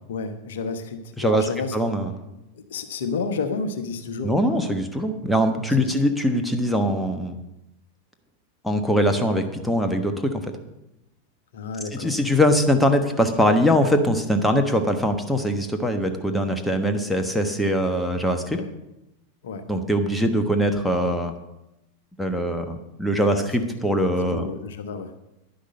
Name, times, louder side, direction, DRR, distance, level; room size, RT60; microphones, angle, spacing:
voice 1, 0.1-1.8 2.5-4.3 5.7-6.1 11.5-12.2 18.5-18.7 19.4-19.6 23.2-23.5 24.0-25.2, left 4 dB, 60° left, 8 dB, 1.1 m, -31 dB
voice 2, 1.7-2.1 4.2-7.4 8.6-10.4 11.9-18.6 19.7-21.3 22.2-24.5, equal, 5° left, 6 dB, 1.1 m, -22 dB
10.5 x 10.5 x 5.5 m, 0.90 s
figure-of-eight pair, 90°, 0 cm